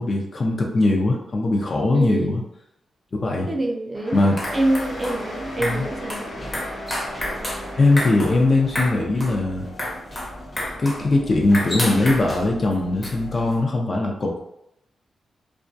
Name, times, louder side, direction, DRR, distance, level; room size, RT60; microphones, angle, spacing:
voice 1, 0.0-2.4 3.1-3.5 4.1-4.4 5.6-5.9 7.8-9.7 10.8-14.4, left 2 dB, 45° left, 0 dB, 0.5 m, -20 dB
voice 2, 1.9-2.4 3.5-4.2 4.5-6.3, right 1 dB, 30° right, 2 dB, 0.4 m, -25 dB
sound 1, 3.9-9.0, left 1 dB, 70° left, 0.9 m, -36 dB
sound 2, 4.1-13.6, left 1 dB, 25° left, 0.8 m, -31 dB
2.3 x 2.2 x 2.6 m, 0.79 s
cardioid pair, 75°, 0 cm